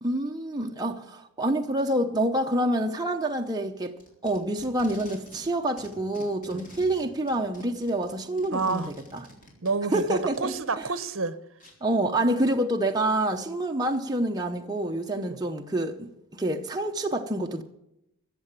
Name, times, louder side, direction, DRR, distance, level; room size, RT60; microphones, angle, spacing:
voice 1, 0.0-3.9 4.2-8.8 9.1-9.2 9.9-10.5 11.8-17.6, right 1 dB, 20° right, 0.8 m, -27 dB
Packing tape duct tape, 3.8-5.5 5.8-10.8 11.6-11.7, equal, 40° left, 4.0 m, -49 dB
voice 2, 8.5-8.9 9.6-11.4 15.2-15.4, right 4 dB, 65° right, 1.0 m, -28 dB
15.0 x 7.7 x 8.9 m
head